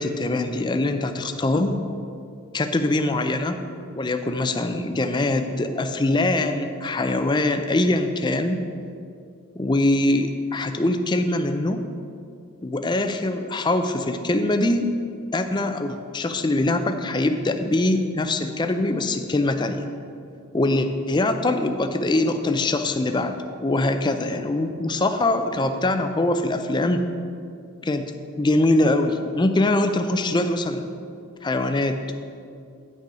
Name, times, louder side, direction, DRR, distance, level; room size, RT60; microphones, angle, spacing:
voice 1, 0.0-1.8 2.5-3.6 3.9-8.7 9.6-11.8 12.6-14.9 15.3-19.8 20.5-23.3 23.6-27.0 27.8-28.1 28.4-30.9 31.4-32.0, left 2 dB, 20° left, 8 dB, 0.4 m, -23 dB
9.8 x 6.6 x 4.8 m, 2.4 s
head